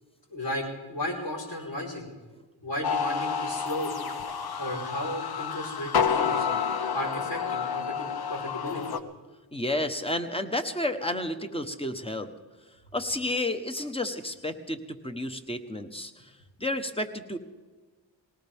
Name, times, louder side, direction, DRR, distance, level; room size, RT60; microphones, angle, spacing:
voice 1, 0.3-2.1 2.6-4.1 4.6-6.5 6.9-8.0 8.3-9.0, left 1 dB, 75° left, -2 dB, 4.7 m, -34 dB
sound 1, 2.8-9.0, left 6 dB, 60° left, 1.0 m, -29 dB
voice 2, 9.5-12.3 12.9-16.3 16.6-17.4, left 1 dB, 15° left, 8 dB, 1.2 m, -31 dB
19.5 x 18.5 x 3.6 m, 1.3 s
cardioid pair, 65°, 43 cm